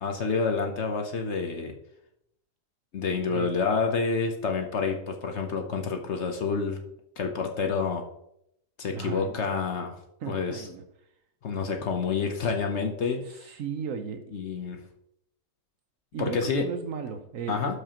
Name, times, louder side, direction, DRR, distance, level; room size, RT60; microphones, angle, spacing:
voice 1, 0.0-1.7 2.9-6.8 7.2-8.0 8.8-10.0 10.3-10.7 11.4-13.5 14.3-14.8 16.2-16.6 17.5-17.8, left 5 dB, 55° left, 4 dB, 1.0 m, -28 dB
voice 2, 8.9-9.4 10.2-10.8 13.2-14.4 16.1-17.8, right 6 dB, 65° right, 7 dB, 1.1 m, -36 dB
12.5 x 4.9 x 2.9 m, 0.77 s
omnidirectional pair, 1.6 m